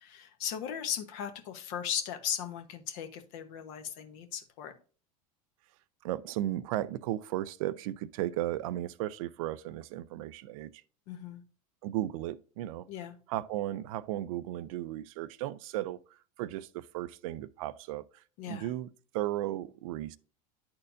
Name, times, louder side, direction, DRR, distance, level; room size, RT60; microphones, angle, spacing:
voice 1, 0.0-4.7 11.1-11.4 12.9-13.1 18.4-18.7, left 8 dB, 65° left, 1.1 m, -37 dB
voice 2, 6.0-10.7 11.8-12.9 13.3-16.0 16.4-20.2, right 14 dB, 70° right, 0.4 m, -35 dB
10.5 x 4.3 x 2.5 m
hypercardioid pair, 95°, 18 cm